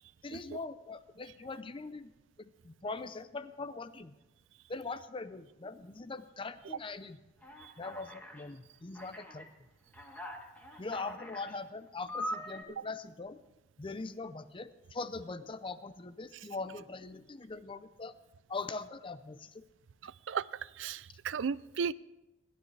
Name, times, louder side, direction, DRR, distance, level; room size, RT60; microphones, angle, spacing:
voice 1, 0.2-2.1 2.4-4.2 4.7-7.2 7.8-9.5 10.8-13.4 13.8-18.1 18.5-19.6, left 3 dB, 25° left, 0.5 m, -42 dB
Alarm, 7.4-8.4 8.9-9.4 9.9-11.6 12.1-12.6, equal, 10° left, 1.7 m, -42 dB
voice 2, 20.0-20.4 20.8-21.9, right 6 dB, 65° right, 0.4 m, -35 dB
29.0 x 12.0 x 3.3 m
head